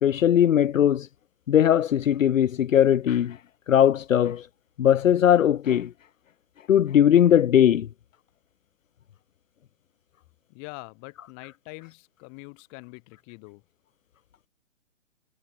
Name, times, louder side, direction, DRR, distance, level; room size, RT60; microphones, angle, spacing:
voice 1, 0.0-1.1 1.5-3.4 3.7-4.5 4.8-5.9 6.7-7.9, left 10 dB, 80° left, 0.6 m, -19 dB
voice 2, 10.5-13.6, left 40 dB or more, 30° left, 7.1 m, -44 dB
figure-of-eight pair, 125°, 39 cm